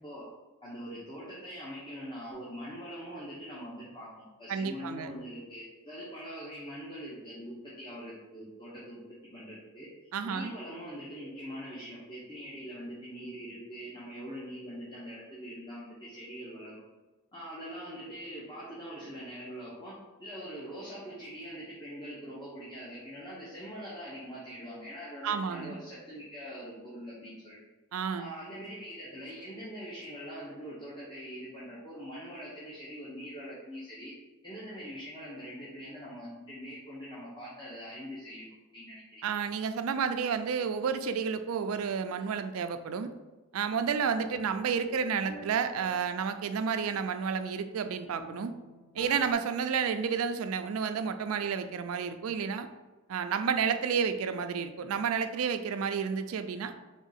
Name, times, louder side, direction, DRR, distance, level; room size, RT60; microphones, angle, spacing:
voice 1, 0.6-9.9 10.2-16.8 17.3-27.6 28.2-34.1 34.4-39.2, equal, 20° left, -8 dB, 0.9 m, -43 dB
voice 2, 4.5-5.1 10.1-10.5 25.2-25.8 27.9-28.3 39.2-43.1 43.5-48.5 49.0-52.7 53.1-56.7, right 6 dB, 75° right, 9 dB, 0.4 m, -31 dB
sound 1, 43.7-49.3, equal, 80° left, 1.2 m, -50 dB
3.6 x 3.6 x 4.0 m, 1.2 s
head